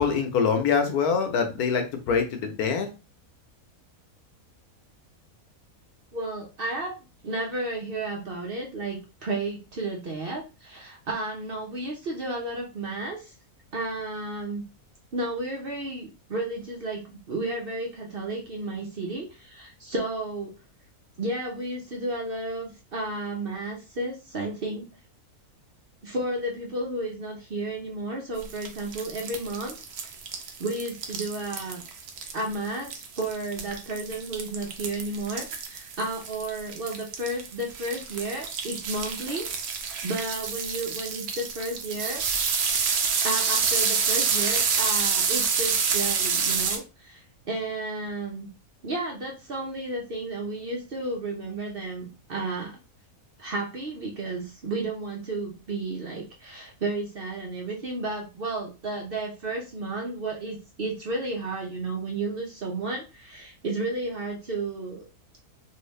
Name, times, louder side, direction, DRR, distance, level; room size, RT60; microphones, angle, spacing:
voice 1, 0.0-2.9, left 6 dB, 80° left, 5 dB, 1.2 m, -24 dB
voice 2, 6.1-6.9 7.2-13.3 13.7-14.6 15.1-20.5 21.2-24.8 26.0-29.8 30.6-31.8 32.3-39.5 40.0-42.2 43.2-48.5 48.8-52.7 53.4-65.0, right 2 dB, 50° right, 0 dB, 0.7 m, -32 dB
sound 1, 28.4-46.8, right 6 dB, 85° right, 1.2 m, -28 dB
3.2 x 2.7 x 3.1 m, 0.30 s
omnidirectional pair, 1.6 m